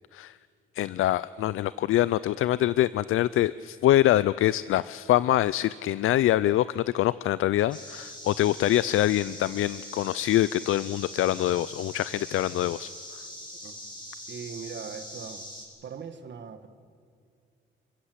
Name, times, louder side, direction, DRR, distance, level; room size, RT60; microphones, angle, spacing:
voice 1, 0.7-12.9, left 13 dB, 80° left, 18 dB, 0.5 m, -24 dB
sound 1, 7.7-15.6, left 1 dB, 20° left, 6.1 m, -42 dB
voice 2, 14.3-15.5 15.8-16.7, right 6 dB, 60° right, 9 dB, 1.8 m, -40 dB
29.0 x 14.5 x 8.0 m, 2.4 s
cardioid pair, 95°, 21 cm